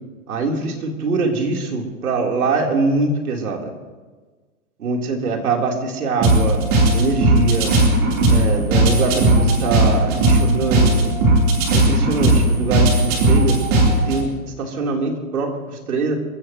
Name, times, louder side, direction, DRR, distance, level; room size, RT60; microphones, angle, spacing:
voice 1, 0.3-3.7 4.8-6.7 6.9-7.7 8.3-11.1 11.7-13.6 14.1-14.3 14.6-16.2, right 3 dB, 75° right, 0 dB, 3.9 m, -23 dB
sound 1, 6.2-14.2, right 1 dB, 30° right, 3.8 m, -16 dB
29.0 x 16.0 x 3.1 m, 1.3 s
hypercardioid pair, 145°, 44 cm